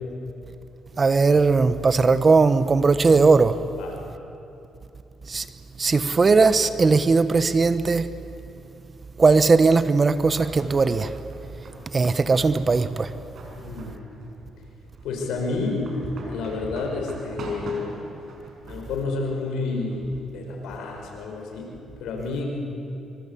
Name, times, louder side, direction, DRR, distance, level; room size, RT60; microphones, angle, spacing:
voice 1, 1.0-3.6 5.3-5.5 5.8-8.1 9.2-11.1 11.9-13.1, right 4 dB, 35° right, 1.1 m, -18 dB
sound 1, 10.1-20.2, right 2 dB, 60° right, 6.0 m, -43 dB
voice 2, 13.5-14.0 15.0-15.9 16.3-17.9 18.6-21.7 22.0-22.4, left 3 dB, 85° left, 5.8 m, -30 dB
25.0 x 24.5 x 8.6 m
cardioid pair, 90°, 0 cm